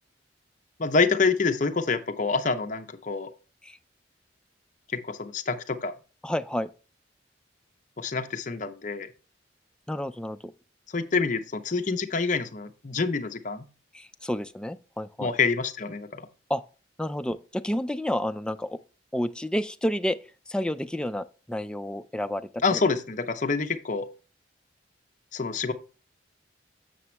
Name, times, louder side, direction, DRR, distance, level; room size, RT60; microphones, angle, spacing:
voice 1, 0.8-3.3 4.9-5.9 8.0-9.1 10.9-13.7 15.2-16.3 22.6-24.1 25.3-25.7, left 4 dB, 40° left, 0.7 m, -27 dB
voice 2, 6.2-6.7 9.9-10.5 13.9-15.3 16.5-16.6 17.0-18.8 19.1-20.2 20.5-22.8, equal, 5° left, 0.3 m, -30 dB
7.0 x 6.9 x 3.2 m
head